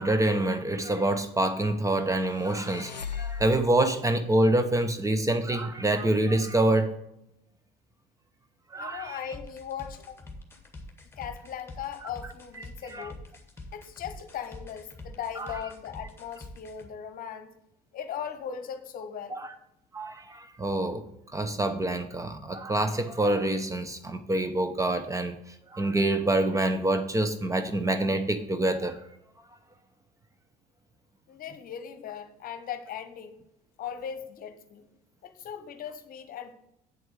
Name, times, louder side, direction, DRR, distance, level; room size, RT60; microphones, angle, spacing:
voice 1, 0.0-7.0 8.7-9.2 12.9-13.1 15.4-15.5 19.3-19.5 19.9-21.0 21.3-25.4 25.7-29.0, right 1 dB, 15° right, 0.9 m, -26 dB
sound 1, 2.2-3.9, left 6 dB, 90° left, 0.5 m, -38 dB
voice 2, 8.7-10.2 11.2-13.2 13.7-17.5 17.9-19.4 31.3-33.4 33.8-34.9 35.2-36.5, left 8 dB, 45° left, 1.1 m, -38 dB
sound 2, 9.3-16.9, left 2 dB, 10° left, 1.8 m, -45 dB
8.6 x 7.7 x 4.7 m
figure-of-eight pair, 60°, 21 cm